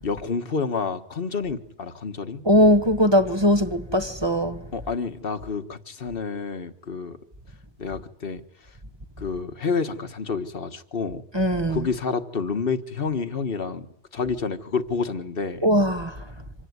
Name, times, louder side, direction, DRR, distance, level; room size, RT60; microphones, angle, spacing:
voice 1, 0.0-2.4 4.7-7.2 7.8-8.4 9.2-11.2 11.7-13.9 14.1-15.7, left 5 dB, 55° left, 1.6 m, -29 dB
voice 2, 2.4-4.6 11.3-11.8 15.6-16.2, equal, 25° right, 1.2 m, -20 dB
26.0 x 18.0 x 9.6 m
omnidirectional pair, 1.2 m